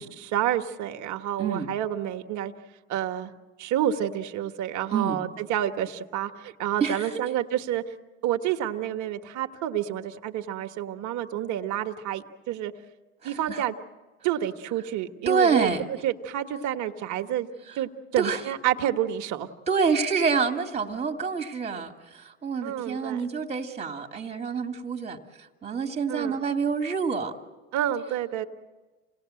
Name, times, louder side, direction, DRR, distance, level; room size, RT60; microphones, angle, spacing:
voice 1, 0.0-2.5 2.9-3.3 3.6-7.8 8.2-12.7 13.2-13.7 14.2-17.5 17.8-19.5 22.6-23.2 26.1-26.4 27.7-28.5, right 11 dB, 50° right, 7 dB, 1.6 m, -29 dB
voice 2, 6.8-7.1 13.2-13.6 15.3-15.9 18.2-18.4 19.7-27.3, right 5 dB, 15° right, 3 dB, 2.3 m, -27 dB
27.5 x 18.5 x 7.8 m, 1.2 s
supercardioid pair, 105°, 36 cm